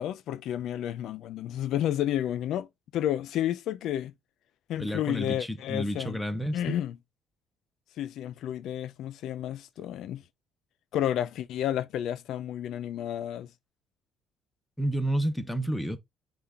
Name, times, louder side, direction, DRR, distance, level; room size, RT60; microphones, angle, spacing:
voice 1, 0.0-2.7 2.9-4.1 4.7-6.2 6.5-7.0 8.0-10.2 10.9-13.5, left 11 dB, 65° left, 0.4 m, -31 dB
voice 2, 4.8-6.8 14.8-16.0, right 1 dB, 5° left, 0.6 m, -30 dB
5.6 x 2.4 x 3.4 m
cardioid pair, 160°, 0 cm